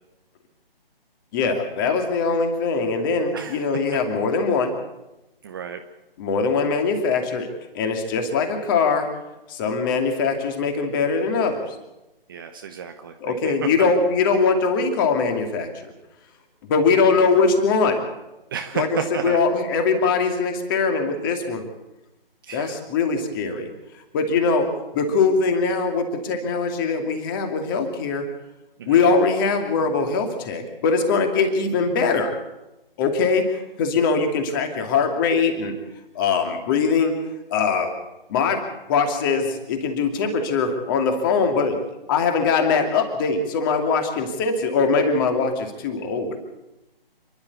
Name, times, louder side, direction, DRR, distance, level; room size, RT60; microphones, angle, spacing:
voice 1, 1.3-4.8 6.2-7.5 7.7-9.1 9.5-11.8 13.2-15.9 16.6-18.0 18.7-21.6 22.5-23.7 24.1-28.3 28.9-32.3 33.0-35.7 36.1-37.1 37.5-37.9 38.3-38.6 38.9-41.8 42.1-46.4, left 4 dB, 20° left, 5 dB, 2.6 m, -22 dB
voice 2, 5.4-5.8 12.3-13.5 18.5-19.4 22.4-22.8 28.8-29.0, right 7 dB, 20° right, 6 dB, 0.9 m, -32 dB
28.5 x 11.5 x 8.4 m, 0.98 s
figure-of-eight pair, 150°, 30 cm